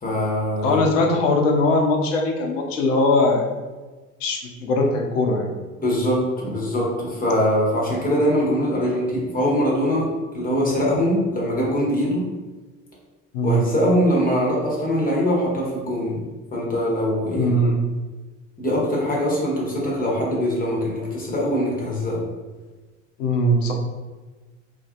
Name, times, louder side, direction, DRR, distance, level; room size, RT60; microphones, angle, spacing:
voice 1, 0.0-0.8 5.8-10.1 10.3-12.2 13.4-16.2 16.5-17.5 18.6-22.2, equal, 20° left, -4 dB, 0.9 m, -22 dB
voice 2, 0.6-3.5 4.2-5.5 13.3-13.7 17.3-17.8 23.2-23.7, left 1 dB, 75° left, 1 dB, 0.6 m, -20 dB
2.9 x 2.6 x 2.4 m, 1.3 s
figure-of-eight pair, 65°, 39 cm